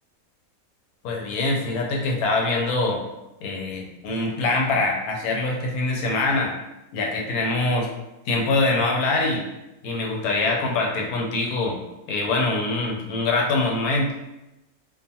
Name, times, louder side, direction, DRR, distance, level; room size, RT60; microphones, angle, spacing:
voice 1, 1.0-3.0 3.4-6.5 6.9-7.9 8.3-9.4 9.8-11.8 12.1-14.1, left 2 dB, 85° left, -1 dB, 1.1 m, -24 dB
2.5 x 2.3 x 2.7 m, 0.95 s
omnidirectional pair, 1.6 m